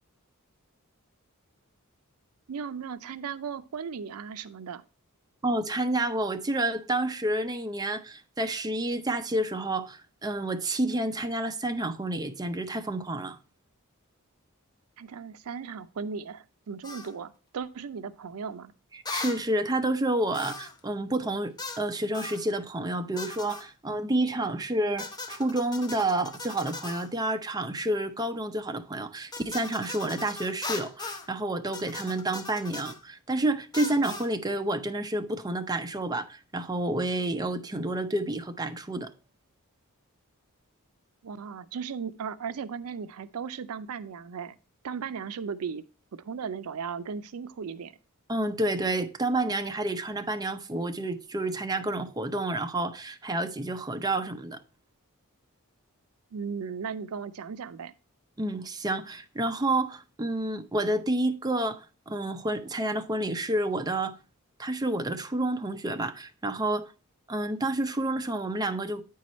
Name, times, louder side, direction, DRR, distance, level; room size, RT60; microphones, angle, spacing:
voice 1, 2.5-4.8 15.0-18.7 41.2-44.5 44.8-45.8 46.1-47.9 56.3-57.9, right 6 dB, 75° right, 0.4 m, -36 dB
voice 2, 5.4-13.4 18.9-39.1 48.3-54.6 58.4-64.2 64.6-66.9 67.3-69.0, right 1 dB, 15° right, 0.5 m, -29 dB
sound 1, 16.8-17.1 19.1-19.4 20.3-20.8 21.6-21.9 22.1-22.4 23.2-23.7 25.0-27.1 29.3-31.3 31.7-33.0 33.7-34.3, left 3 dB, 20° left, 0.8 m, -38 dB
9.1 x 4.6 x 4.1 m
head